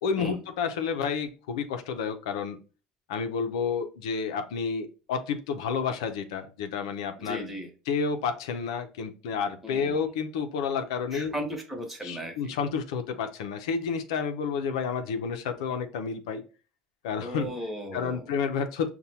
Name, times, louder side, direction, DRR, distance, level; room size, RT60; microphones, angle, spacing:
voice 1, 0.0-2.6 3.1-11.3 12.0-16.4 17.0-17.5 17.9-18.9, left 6 dB, 90° left, 7 dB, 0.5 m, -30 dB
voice 2, 7.2-7.7 9.6-10.0 11.1-12.6 17.2-18.2, equal, 10° right, 2 dB, 1.1 m, -36 dB
5.4 x 2.2 x 2.8 m, 0.35 s
supercardioid pair, 100°, 3 cm